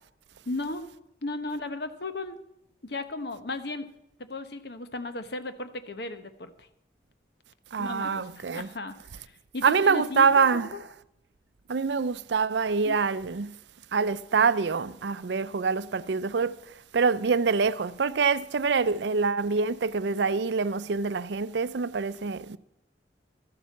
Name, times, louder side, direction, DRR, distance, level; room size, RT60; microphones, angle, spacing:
voice 1, 0.5-0.9 1.2-2.4 2.8-3.9 4.3-6.7 7.8-10.8 12.8-13.0, left 2 dB, 65° left, 1.0 m, -36 dB
voice 2, 7.7-8.7 9.6-10.7 11.7-13.5 13.9-16.6 16.9-22.6, right 5 dB, 70° right, 0.5 m, -25 dB
13.0 x 7.4 x 7.1 m
head